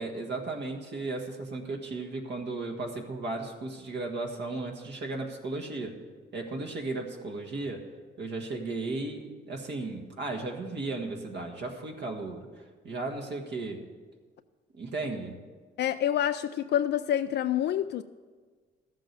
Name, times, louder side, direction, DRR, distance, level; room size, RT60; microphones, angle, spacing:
voice 1, 0.0-6.0 6.3-7.9 8.2-13.8 14.8-15.4, right 3 dB, 60° right, 1.6 m, -35 dB
voice 2, 15.8-18.0, left 10 dB, 60° left, 0.4 m, -27 dB
13.0 x 7.6 x 6.7 m
cardioid pair, 90°, 20 cm